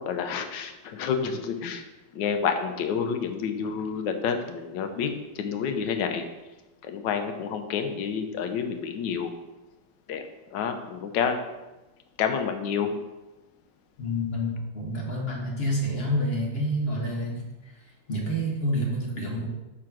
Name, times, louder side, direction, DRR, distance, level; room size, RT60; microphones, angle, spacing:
voice 1, 0.0-1.8 2.1-6.2 6.8-9.3 10.1-10.2 10.5-11.4 12.2-13.0, left 6 dB, 85° left, 7 dB, 1.4 m, -29 dB
voice 2, 14.0-17.4 18.1-19.5, equal, 35° left, -3 dB, 1.5 m, -28 dB
5.7 x 3.8 x 5.9 m, 1.1 s
omnidirectional pair, 1.9 m